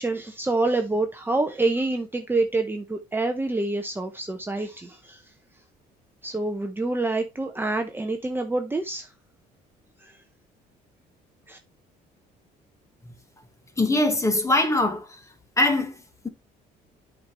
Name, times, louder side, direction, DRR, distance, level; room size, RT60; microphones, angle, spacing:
voice 1, 0.0-5.2 6.2-9.1 10.0-10.1 11.5-11.6, right 2 dB, 10° right, 0.9 m, -27 dB
voice 2, 13.8-15.2 15.6-16.3, left 2 dB, 15° left, 1.6 m, -23 dB
8.6 x 5.4 x 3.0 m
cardioid pair, 110°, 17 cm